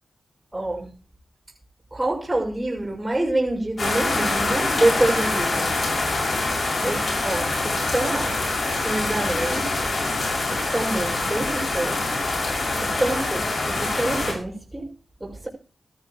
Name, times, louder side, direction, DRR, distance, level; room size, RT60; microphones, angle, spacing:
voice 1, 0.5-0.9 1.9-5.7 6.8-8.4 8.8-9.7 10.5-12.2 12.8-14.9 15.2-15.5, right 1 dB, 20° right, 6.3 m, -26 dB
sound 1, 3.8-14.3, left 2 dB, 65° left, 6.1 m, -25 dB
16.5 x 13.0 x 3.1 m
cardioid pair, 50°, 0 cm